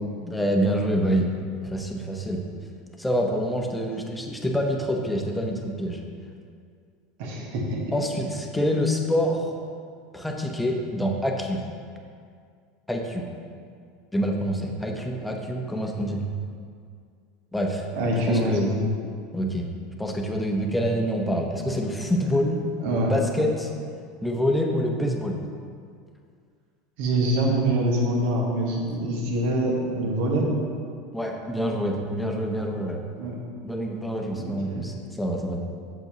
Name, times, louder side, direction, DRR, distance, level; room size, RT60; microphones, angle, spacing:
voice 1, 0.2-1.3 1.6-2.4 3.0-6.0 7.9-9.5 10.1-11.6 12.9-13.3 14.1-16.3 17.5-17.8 18.3-18.7 19.3-19.7 20.0-23.7 24.2-25.4 31.1-33.0 33.6-35.6, equal, 5° left, 1 dB, 0.9 m, -26 dB
voice 2, 7.2-7.8 17.9-18.8 22.8-23.1 27.0-30.4 33.2-33.3 34.3-34.8, right 1 dB, 60° right, -2 dB, 1.5 m, -25 dB
8.0 x 7.1 x 3.0 m, 2.2 s
figure-of-eight pair, 80°, 0 cm